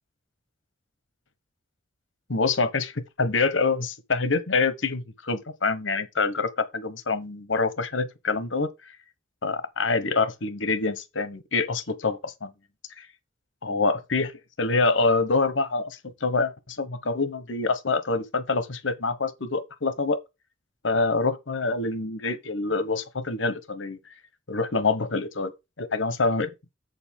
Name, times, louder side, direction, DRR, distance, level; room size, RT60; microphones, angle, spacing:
voice 1, 2.3-8.7 9.4-12.5 13.0-13.1 13.6-14.3 14.6-20.2 20.8-24.1 24.5-25.5 25.8-26.5, left 3 dB, 75° left, 1.1 m, -26 dB
7.9 x 7.0 x 3.6 m
head